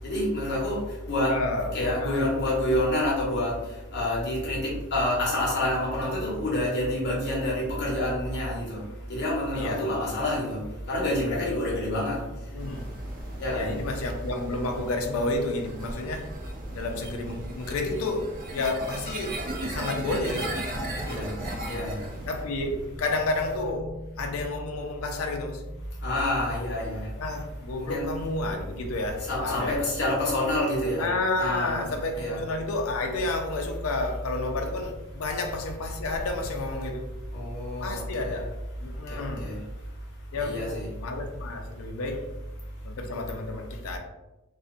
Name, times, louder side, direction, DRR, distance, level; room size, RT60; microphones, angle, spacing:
voice 1, 0.0-1.3 1.7-12.7 13.4-13.7 20.9-21.3 21.6-22.2 26.0-27.2 27.8-28.1 29.3-31.0 31.4-31.8 32.2-32.4 37.3-38.4 38.9-39.6 40.0-40.1 40.4-40.9, left 1 dB, 50° left, -5 dB, 0.8 m, -28 dB
voice 2, 1.2-2.3 6.0-6.1 9.5-9.9 11.3-11.4 12.5-12.9 13.5-16.4 16.7-20.7 21.0-21.9 22.2-25.9 27.2-29.8 31.0-37.1 37.8-38.5 38.8-39.5 40.3-42.2 42.8-44.0, left 2 dB, 75° left, 3 dB, 0.4 m, -31 dB
sound 1, 12.6-22.4, right 1 dB, 40° right, 0.4 m, -37 dB
2.4 x 2.1 x 2.4 m, 1.0 s
head